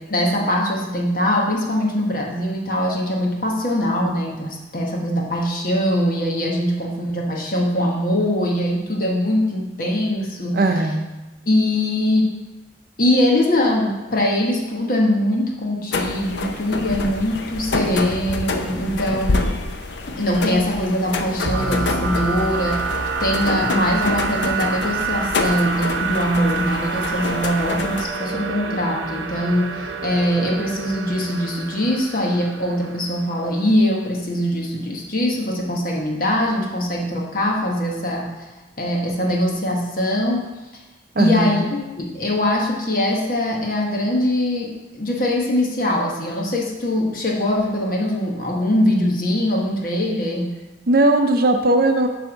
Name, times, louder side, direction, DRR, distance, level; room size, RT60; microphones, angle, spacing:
voice 1, 0.1-10.6 11.5-12.4 13.0-19.5 20.1-22.8 23.2-38.5 38.8-40.4 41.2-50.5, left 1 dB, 45° left, -1 dB, 1.2 m, -22 dB
voice 2, 10.5-11.1 41.1-41.6 50.9-52.1, right 2 dB, 50° right, 5 dB, 0.6 m, -18 dB
sound 1, 15.9-28.0, left 3 dB, 70° left, 0.6 m, -27 dB
sound 2, 21.5-33.2, right 4 dB, 85° right, 0.7 m, -27 dB
7.4 x 3.5 x 6.3 m, 1.1 s
head